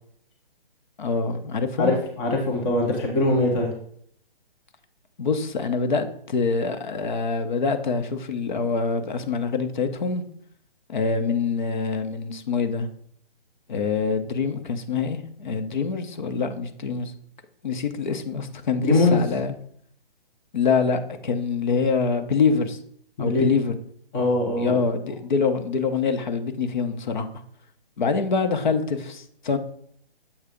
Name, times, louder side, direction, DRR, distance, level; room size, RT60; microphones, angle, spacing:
voice 1, 1.0-1.9 5.2-10.2 10.9-12.9 13.7-17.1 17.6-19.5 20.5-22.8 23.2-23.7 24.6-27.3 28.0-29.6, left 5 dB, 50° left, 8 dB, 0.9 m, -25 dB
voice 2, 1.8-3.7 18.8-19.3 23.2-23.5 24.1-24.7, left 2 dB, 10° left, 0 dB, 0.5 m, -22 dB
7.2 x 3.3 x 5.1 m, 0.65 s
figure-of-eight pair, 140°, 29 cm